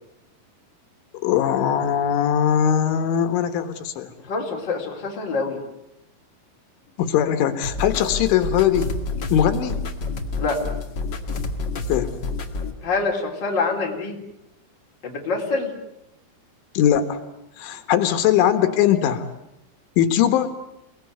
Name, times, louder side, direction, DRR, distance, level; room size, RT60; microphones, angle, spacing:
voice 1, 1.2-4.1 7.0-8.9 9.3-9.8 11.9-12.1 16.8-17.2 17.6-19.2 20.0-20.5, left 9 dB, 80° left, 9 dB, 3.9 m, -20 dB
voice 2, 4.3-5.6 10.4-10.6 12.8-14.2 15.0-15.7, left 3 dB, 25° left, 0 dB, 3.9 m, -25 dB
sound 1, 7.6-12.7, left 3 dB, 60° left, 1.1 m, -29 dB
29.0 x 19.5 x 9.5 m, 0.84 s
omnidirectional pair, 5.4 m